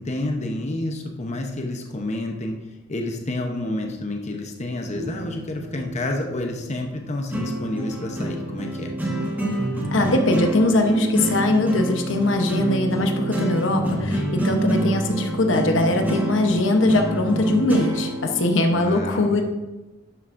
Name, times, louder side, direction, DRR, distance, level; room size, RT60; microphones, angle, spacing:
voice 1, 0.0-2.6 2.9-8.9 18.7-19.4, left 1 dB, 35° left, 2 dB, 0.9 m, -29 dB
sound 1, 4.9-18.9, right 1 dB, 10° right, 1.7 m, -27 dB
voice 2, 9.9-19.4, left 2 dB, 70° left, 4 dB, 0.9 m, -21 dB
12.0 x 7.9 x 2.6 m, 1.1 s
head